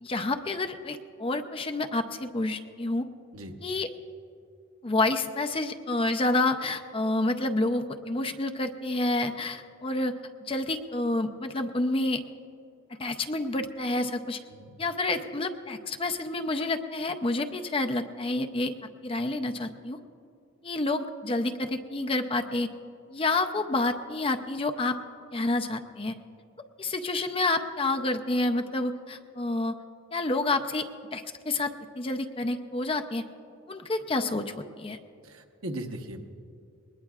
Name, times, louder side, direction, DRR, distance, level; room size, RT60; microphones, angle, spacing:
voice 1, 0.0-3.0 3.6-3.9 4.8-10.1 10.4-12.2 13.0-14.4 14.8-20.0 20.6-22.7 23.1-25.0 25.3-26.2 26.8-29.8 30.1-30.9 31.1-33.2 33.7-35.0, left 2 dB, 25° left, 7 dB, 0.6 m, -29 dB
voice 2, 35.2-36.2, right 1 dB, 80° right, 4 dB, 1.0 m, -38 dB
20.5 x 20.0 x 2.4 m, 2.5 s
head